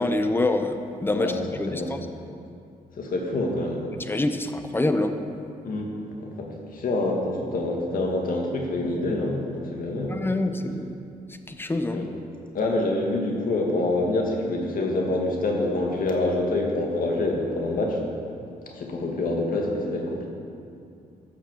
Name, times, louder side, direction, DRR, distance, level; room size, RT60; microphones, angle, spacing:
voice 1, 0.0-1.3 1.6-2.1 4.1-5.1 10.1-11.0 11.5-12.0, left 2 dB, 15° left, 7 dB, 0.8 m, -26 dB
voice 2, 1.1-1.9 2.9-3.9 5.6-5.9 6.2-10.2 11.9-12.0 12.5-18.0 18.7-20.3, left 2 dB, 65° left, 0 dB, 2.1 m, -26 dB
13.5 x 6.5 x 7.4 m, 2.4 s
cardioid pair, 125°, 15 cm